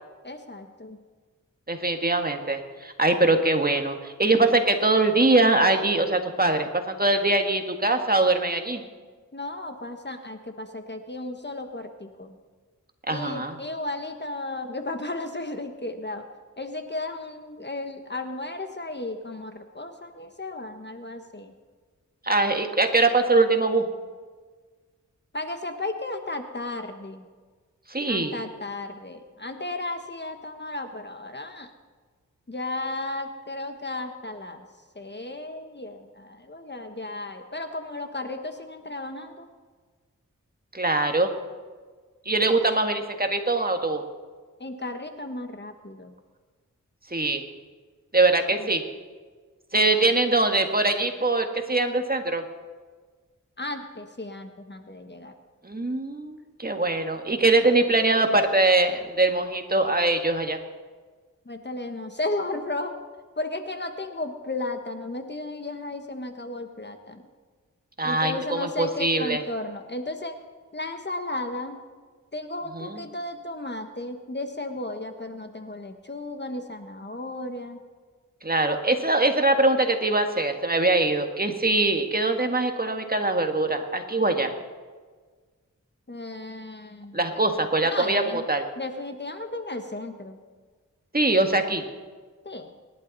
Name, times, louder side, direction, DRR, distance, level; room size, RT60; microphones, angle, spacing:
voice 1, 0.2-1.0 9.3-12.4 13.1-16.2 16.6-21.5 25.3-27.2 28.1-31.7 32.5-34.6 34.9-39.5 44.6-46.1 48.5-48.7 49.7-50.1 53.6-55.3 61.4-62.9 63.4-67.3 68.0-70.3 70.7-71.8 72.3-77.8 86.1-87.2 87.8-88.4 88.8-90.4 92.4-92.7, left 2 dB, 35° left, 6 dB, 1.4 m, -34 dB
voice 2, 1.7-8.8 13.1-13.6 22.2-23.9 27.9-28.4 40.7-41.3 42.3-44.0 47.1-47.4 48.1-48.8 49.7-52.4 55.6-60.6 68.0-69.4 72.7-73.0 78.4-84.5 87.1-88.7 91.1-91.8, right 2 dB, 30° right, 5 dB, 1.7 m, -22 dB
27.0 x 11.5 x 4.1 m, 1.5 s
wide cardioid pair, 60°, 31 cm